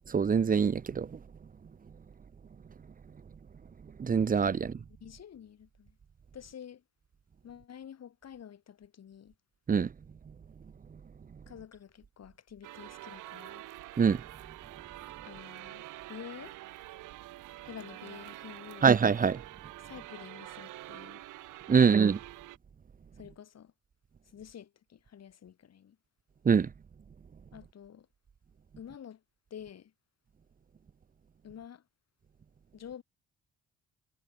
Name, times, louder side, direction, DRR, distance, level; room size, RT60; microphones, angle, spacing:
voice 1, 0.1-1.1 4.0-4.7 9.7-9.9 14.0-14.2 18.8-19.4 21.7-22.2 26.5-26.7, right 6 dB, 30° right, 0.7 m, -24 dB
voice 2, 4.5-6.0 6.3-6.8 7.4-9.3 11.5-13.7 15.2-16.6 17.6-18.9 19.8-21.2 21.7-21.9 23.1-23.7 24.2-26.0 27.5-28.1 28.8-29.2 29.5-29.9 31.4-31.8 32.7-33.0, left 9 dB, 55° left, 4.9 m, -49 dB
sound 1, 12.6-22.6, right 16 dB, 90° right, 2.0 m, -47 dB
cardioid pair, 90°, 30 cm